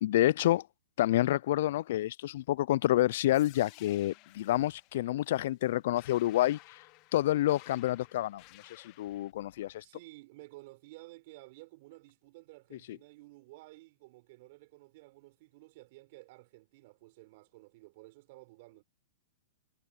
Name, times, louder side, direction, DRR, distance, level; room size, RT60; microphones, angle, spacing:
voice 1, 0.0-0.7 1.0-6.6 7.1-9.8 12.9-13.0, left 14 dB, 60° left, 0.3 m, -28 dB
sound 1, 3.3-9.3, left 23 dB, 40° left, 1.1 m, -56 dB
voice 2, 9.8-18.8, right 21 dB, 50° right, 4.7 m, -53 dB
hypercardioid pair, 125°, 0 cm